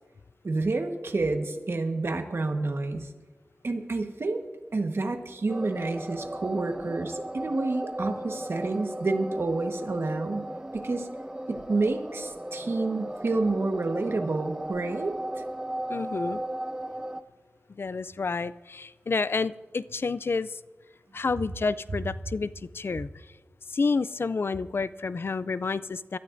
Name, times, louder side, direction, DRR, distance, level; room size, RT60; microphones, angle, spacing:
voice 1, 0.4-3.1 3.6-4.4 4.7-11.1 11.5-15.1, right 3 dB, 70° right, 5 dB, 1.3 m, -29 dB
sound 1, 5.5-17.2, right 1 dB, 15° right, 0.5 m, -36 dB
voice 2, 15.9-16.4 17.7-20.6 21.1-23.1 23.7-26.2, left 4 dB, 65° left, 16 dB, 0.3 m, -29 dB
24.5 x 13.0 x 2.6 m, 1.3 s
wide cardioid pair, 60°, 4 cm